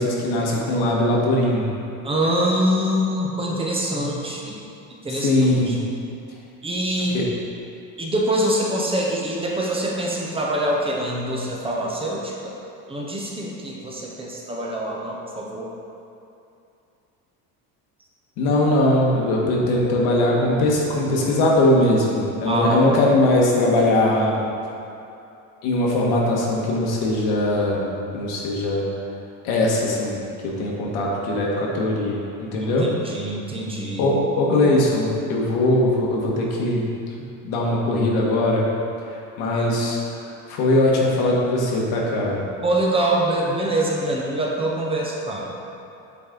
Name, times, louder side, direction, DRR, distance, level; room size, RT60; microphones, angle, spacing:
voice 1, 0.0-1.7 5.1-5.8 7.1-7.2 18.4-24.4 25.6-27.9 28.1-28.9 29.4-32.9 34.0-36.9 37.2-38.7 39.1-42.4, left 1 dB, 90° left, -3 dB, 1.5 m, -21 dB
voice 2, 2.0-4.6 4.9-5.3 5.7-5.8 6.6-7.1 8.0-12.5 12.9-15.7 22.4-22.8 32.6-32.7 33.0-34.0 42.6-45.6, right 1 dB, 15° right, -3 dB, 0.6 m, -24 dB
8.4 x 4.1 x 3.8 m, 2.7 s
cardioid pair, 165°, 36 cm